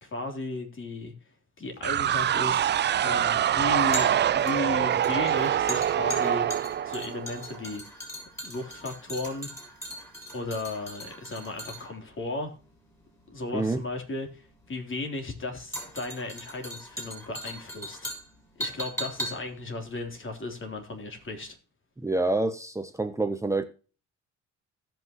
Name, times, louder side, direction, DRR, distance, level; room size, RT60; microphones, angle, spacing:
voice 1, 0.0-1.1 1.6-2.7 3.0-7.8 8.4-9.5 10.3-12.5 13.3-18.1 18.5-21.6, left 2 dB, 40° left, 3.4 m, -35 dB
sound 1, 1.8-21.0 21.3-21.4, equal, 10° left, 5.8 m, -40 dB
sound 2, 1.8-7.6, right 10 dB, 40° right, 0.4 m, -25 dB
voice 2, 22.0-23.6, right 2 dB, 10° right, 0.8 m, -27 dB
17.0 x 6.0 x 3.0 m
cardioid pair, 90°, 30 cm